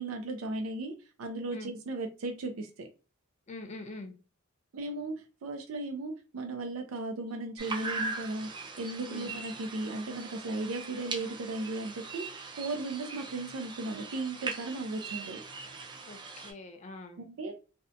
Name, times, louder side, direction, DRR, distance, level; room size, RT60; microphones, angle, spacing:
voice 1, 0.0-2.9 4.7-5.1 5.4-8.5 8.8-12.2 12.6-15.4 17.2-17.6, right 2 dB, 85° right, 4 dB, 0.4 m, -36 dB
voice 2, 3.5-4.1 9.1-9.3 16.1-17.2, left 2 dB, 35° left, 5 dB, 0.4 m, -44 dB
sound 1, 7.6-16.5, right 4 dB, 20° right, 0.4 m, -40 dB
2.6 x 2.1 x 2.5 m, 0.33 s
head